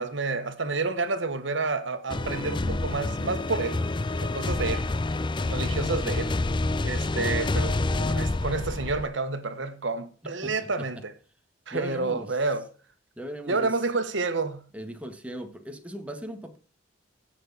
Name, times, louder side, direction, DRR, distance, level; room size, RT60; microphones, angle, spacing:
voice 1, 0.0-3.8 4.2-4.9 5.5-6.3 6.8-11.1 11.7-12.7 13.5-14.7, right 3 dB, 75° right, 1.4 m, -29 dB
sound 1, 2.1-9.1, left 2 dB, 25° left, 0.5 m, -28 dB
voice 2, 10.4-11.0 11.7-12.4 13.2-13.8 14.7-16.6, equal, 5° right, 1.7 m, -38 dB
15.5 x 6.5 x 4.1 m
head